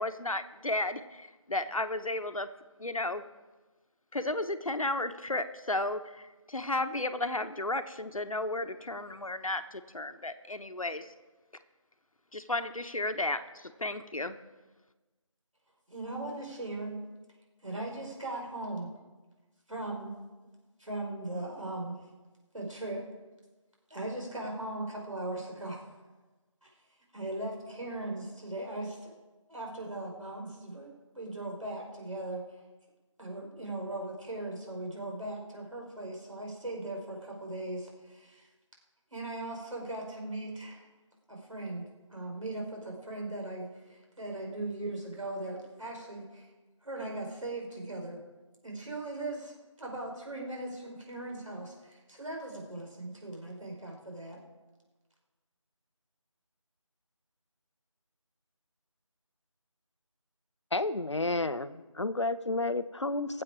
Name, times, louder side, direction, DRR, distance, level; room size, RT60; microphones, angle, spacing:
voice 1, 0.0-2.5 2.8-3.2 4.1-11.1 12.3-14.4, left 2 dB, 85° left, 10 dB, 1.1 m, -33 dB
voice 2, 15.9-17.0 17.6-18.9 19.7-20.1 20.8-21.9 22.5-23.0 23.9-25.9 26.6-26.7 27.1-29.1 29.5-30.9 31.1-32.4 33.2-38.5 39.1-40.9 41.3-46.5 46.8-48.2 48.6-54.4, right 2 dB, 75° right, -1 dB, 4.9 m, -39 dB
voice 3, 60.7-63.4, left 2 dB, 60° left, 14 dB, 0.7 m, -31 dB
21.5 x 7.9 x 4.8 m, 1.2 s
figure-of-eight pair, 170°, 17 cm